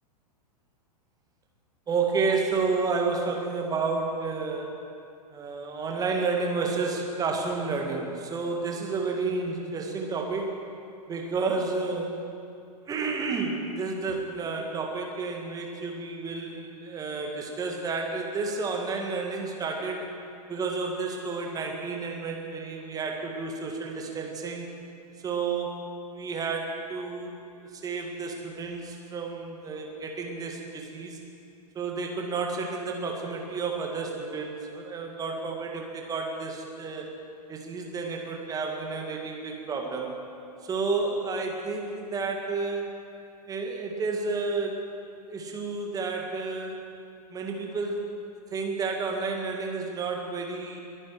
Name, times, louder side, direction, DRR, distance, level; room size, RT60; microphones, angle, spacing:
voice 1, 1.9-4.8 5.3-10.6 11.1-12.2 12.9-20.1 20.5-24.7 25.2-25.8 26.1-27.3 27.7-31.2 31.8-37.1 37.5-40.1 40.6-42.9 43.5-44.8 45.3-46.8 47.3-48.0 48.5-50.8, right 4 dB, 20° right, 1 dB, 2.0 m, -31 dB
22.0 x 9.8 x 4.8 m, 2.6 s
figure-of-eight pair, 100°, 21 cm